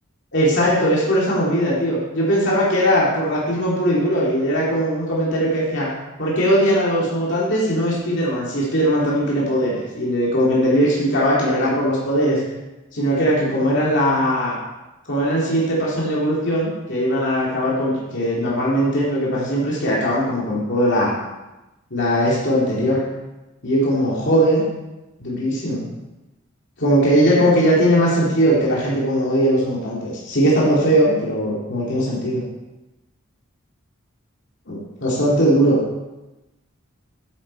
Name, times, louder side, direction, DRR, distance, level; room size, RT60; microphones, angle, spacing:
voice 1, 0.3-5.9 6.2-12.4 12.9-14.6 15.1-21.1 21.9-23.0 23.6-24.6 25.2-25.8 26.8-32.4 34.7-35.8, equal, 60° left, -6 dB, 2.5 m, -19 dB
9.3 x 8.0 x 4.3 m, 1.0 s
head